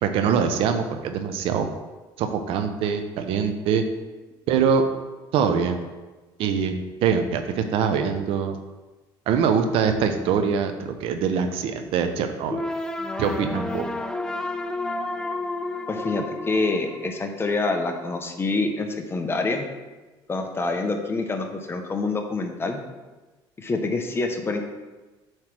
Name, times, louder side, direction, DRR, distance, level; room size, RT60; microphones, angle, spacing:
voice 1, 0.0-1.7 2.2-3.8 4.5-4.8 5.3-5.9 6.4-6.7 7.0-8.6 9.3-12.6 13.2-13.9, right 6 dB, 70° right, 7 dB, 0.7 m, -23 dB
sound 1, 12.5-17.5, left 2 dB, 5° left, 0.5 m, -31 dB
voice 2, 15.9-19.6 20.3-22.8 23.6-24.6, left 3 dB, 25° left, 4 dB, 0.9 m, -26 dB
7.4 x 3.2 x 6.1 m, 1.2 s
cardioid pair, 105°, 10 cm